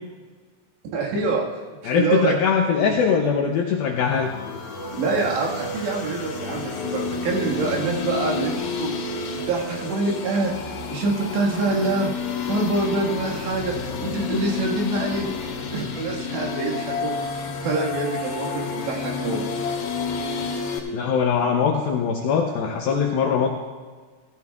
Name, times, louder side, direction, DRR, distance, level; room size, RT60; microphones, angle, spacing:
voice 1, 0.9-2.4 2.8-3.0 3.4-3.5 4.9-8.9 9.3-10.5 10.9-12.1 12.4-15.3 15.7-19.4, right 3 dB, 75° right, -2 dB, 4.0 m, -26 dB
voice 2, 1.9-4.3 20.9-23.5, left 6 dB, 80° left, 1 dB, 2.2 m, -21 dB
sound 1, 3.9-20.8, left 5 dB, 60° left, 3.1 m, -30 dB
16.5 x 15.0 x 2.4 m, 1.5 s
omnidirectional pair, 5.1 m